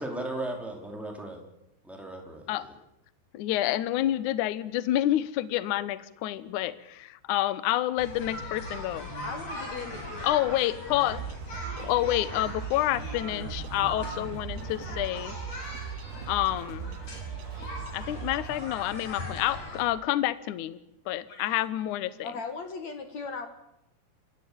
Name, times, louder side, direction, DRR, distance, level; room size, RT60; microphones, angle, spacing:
voice 1, 0.0-1.4 1.8-2.7, right 1 dB, ahead, 1 dB, 4.0 m, -36 dB
voice 2, 3.3-9.1 10.2-11.2 11.8-15.4 16.3-17.0 17.9-20.8 21.0-22.3, left 14 dB, 85° left, 15 dB, 1.7 m, -28 dB
sound 1, 8.0-19.8, left 1 dB, 40° left, 7.0 m, -40 dB
voice 3, 9.2-10.3 21.3-21.5 22.2-23.5, left 4 dB, 55° left, 8 dB, 2.2 m, -38 dB
sound 2, 11.1-18.6, right 9 dB, 75° right, 2.8 m, -39 dB
29.0 x 15.5 x 8.8 m, 0.84 s
omnidirectional pair, 5.1 m